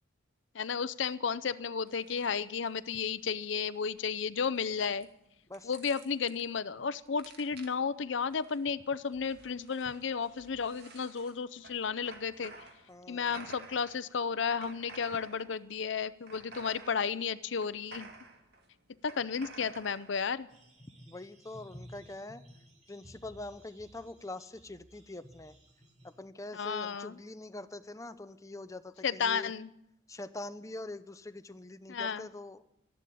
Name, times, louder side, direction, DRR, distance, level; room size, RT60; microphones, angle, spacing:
voice 1, 0.5-5.1 5.6-12.5 13.1-18.1 19.0-20.5 26.5-27.2 29.0-29.7 31.9-32.3, left 6 dB, 65° left, 15 dB, 0.6 m, -33 dB
sound 1, 1.9-20.6, right 3 dB, 55° right, 2.1 m, -53 dB
voice 2, 12.9-13.5 21.1-22.4 22.9-25.6 26.0-29.5 30.1-32.6, left 2 dB, 15° left, 12 dB, 0.6 m, -44 dB
sound 2, 20.5-26.1, equal, 40° right, 3.8 m, -55 dB
13.0 x 11.5 x 8.5 m, 0.82 s
head